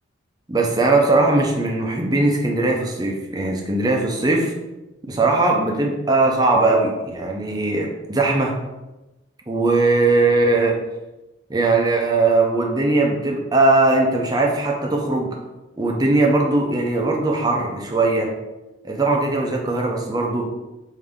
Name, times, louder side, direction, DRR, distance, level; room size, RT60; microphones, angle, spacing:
voice 1, 0.5-4.5 5.1-8.5 9.5-10.8 11.5-15.4 15.8-18.3 18.8-20.5, right 2 dB, 20° right, 0 dB, 0.6 m, -19 dB
5.1 x 2.7 x 3.5 m, 1.0 s
head